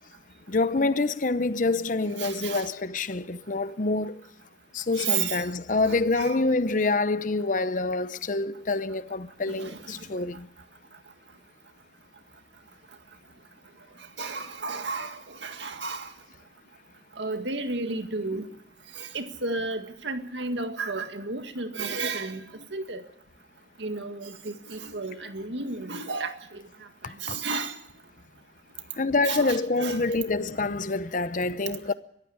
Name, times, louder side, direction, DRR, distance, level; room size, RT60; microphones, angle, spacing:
voice 1, 0.5-4.2 4.7-10.5 27.0-27.4 29.0-31.9, left 3 dB, 45° left, 0.7 m, -26 dB
voice 2, 2.2-2.7 4.9-5.4 5.9-6.3 9.5-10.0 14.2-16.1 17.2-18.4 19.0-22.4 22.7-23.0 23.8-26.6 27.2-27.7 29.3-30.0 30.5-30.6, right 4 dB, 80° right, 2.0 m, -32 dB
23.0 x 14.5 x 8.7 m
head